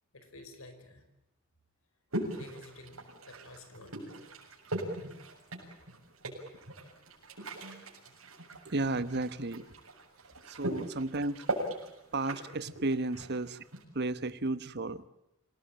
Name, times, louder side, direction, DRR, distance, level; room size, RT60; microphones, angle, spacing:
voice 1, 0.1-1.0 2.3-4.0 6.5-6.6 7.2-7.3 10.7-10.8 13.1-13.2, left 2 dB, 75° left, 9 dB, 5.2 m, -52 dB
sound 1, 2.1-13.8, right 1 dB, 90° right, 7.1 m, -40 dB
voice 2, 8.6-9.6 10.5-11.5 12.1-13.6 13.9-15.0, right 2 dB, 55° right, 14 dB, 1.2 m, -33 dB
27.0 x 18.5 x 9.0 m, 0.87 s
head